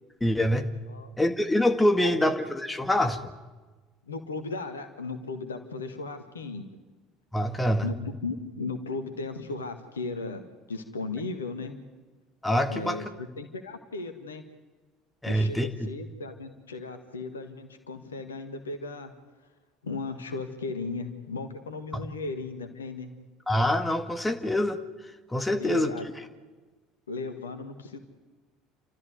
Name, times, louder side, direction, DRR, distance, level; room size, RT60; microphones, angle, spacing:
voice 1, 0.2-0.7 1.2-3.2 7.3-7.9 12.4-13.0 15.2-15.9 21.9-22.0 23.5-24.8 25.3-25.9, left 1 dB, 10° left, 7 dB, 2.0 m, -25 dB
voice 2, 2.0-2.3 4.1-6.7 7.8-8.0 8.2-10.4 10.7-11.8 12.7-14.4 15.3-19.1 19.8-23.1 25.6-26.1 27.1-28.0, left 3 dB, 75° left, 9 dB, 1.7 m, -36 dB
30.0 x 13.5 x 9.6 m, 1.3 s
figure-of-eight pair, 65°, 0 cm